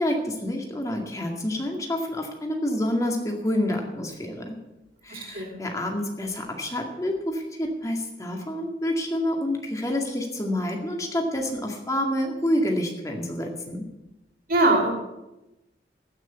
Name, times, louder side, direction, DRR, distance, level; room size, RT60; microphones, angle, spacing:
voice 1, 0.0-4.6 5.0-13.8, left 1 dB, 20° left, 2 dB, 2.1 m, -28 dB
voice 2, 5.1-5.6 14.5-14.9, right 2 dB, 50° right, 2 dB, 3.0 m, -22 dB
15.0 x 6.4 x 8.1 m, 0.97 s
head